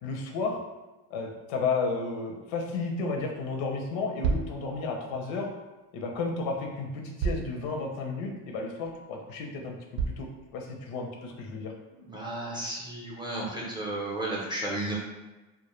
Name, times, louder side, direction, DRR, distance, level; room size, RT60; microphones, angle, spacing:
voice 1, 0.0-0.6 1.1-5.5 5.9-10.3 10.5-11.7, left 4 dB, 80° left, 2 dB, 0.6 m, -32 dB
sound 1, 4.2-4.6 6.1-6.2 7.2-7.6 8.1-8.2 8.8-8.9 10.0-10.3, right 5 dB, 75° right, 0.5 m, -29 dB
voice 2, 11.9-14.9, right 1 dB, 10° right, -5 dB, 0.5 m, -33 dB
2.1 x 2.1 x 3.0 m, 1.1 s
cardioid pair, 110°, 45 cm